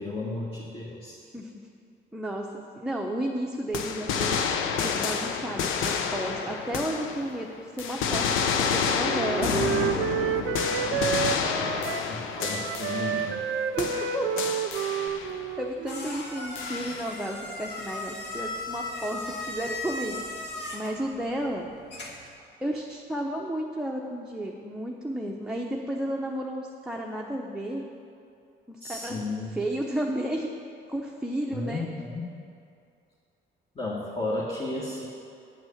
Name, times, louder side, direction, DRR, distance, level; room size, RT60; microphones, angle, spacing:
voice 1, 0.0-1.2 10.8-11.7 12.1-13.4 28.8-29.6 31.5-32.3 33.7-35.1, left 2 dB, 30° left, -5 dB, 1.6 m, -34 dB
voice 2, 2.1-9.6 13.8-14.3 15.6-21.7 22.6-27.8 28.7-29.2 29.5-30.5 30.9-31.9, right 1 dB, 5° right, -1 dB, 0.8 m, -33 dB
sound 1, 3.7-7.5 7.8-13.5 13.8-15.4 16.6-17.3, left 6 dB, 90° left, 0.7 m, -29 dB
Wind instrument woodwind instrument, 8.6-12.1 12.4-16.2, right 8 dB, 75° right, 0.5 m, -30 dB
sound 2, 15.1-22.4, left 2 dB, 60° left, 1.7 m, -38 dB
9.5 x 6.2 x 7.1 m, 2.5 s
cardioid pair, 90°, 20 cm